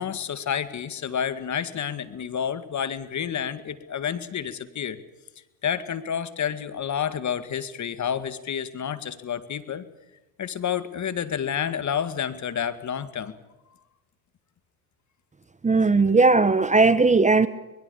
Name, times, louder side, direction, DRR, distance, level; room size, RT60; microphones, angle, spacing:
voice 1, 0.0-5.0 5.6-9.9 10.4-13.3, left 8 dB, 40° left, 12 dB, 2.2 m, -29 dB
voice 2, 15.6-17.5, right 3 dB, 15° right, 15 dB, 1.1 m, -18 dB
24.0 x 21.5 x 7.2 m, 1.0 s
supercardioid pair, 85°, 46 cm